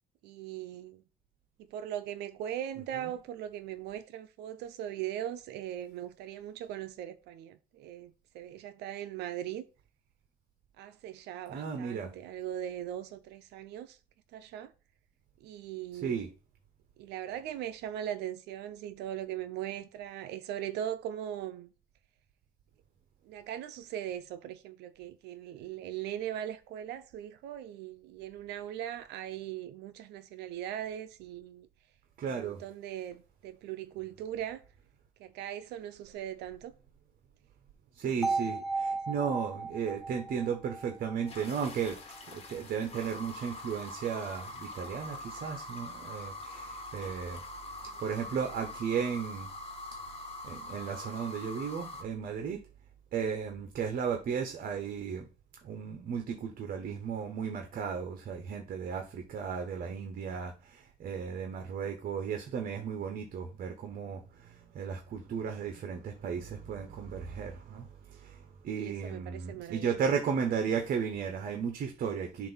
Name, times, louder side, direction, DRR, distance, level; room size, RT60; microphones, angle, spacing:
voice 1, 0.2-1.0 1.7-9.6 10.8-14.0 14.3-14.7 15.4-16.3 17.0-21.7 23.3-31.7 32.2-34.6 35.2-36.7 38.0-38.6 39.1-39.3 47.9-48.0 68.7-69.9, right 11 dB, 80° right, 0.6 m, -40 dB
voice 2, 11.5-12.1 16.0-16.3 32.2-32.6 37.9-42.0 42.3-47.4 48.0-49.5 50.4-52.6 53.1-55.3 55.6-72.5, right 7 dB, 55° right, 1.0 m, -35 dB
sound 1, 38.2-42.2, right 3 dB, ahead, 2.0 m, -35 dB
sound 2, 41.3-52.0, left 2 dB, 35° left, 1.4 m, -44 dB
7.3 x 2.7 x 5.6 m
cardioid pair, 110°, 17 cm